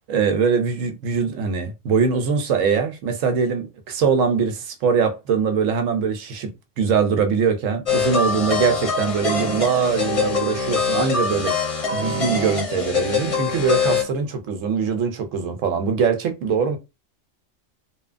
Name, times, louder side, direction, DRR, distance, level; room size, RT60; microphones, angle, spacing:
voice 1, 0.1-6.5 6.8-11.5 11.9-16.8, right 6 dB, 75° right, 0.9 m, -22 dB
sound 1, 7.9-14.0, left 5 dB, 35° left, 0.6 m, -23 dB
2.8 x 2.1 x 2.4 m
omnidirectional pair, 1.4 m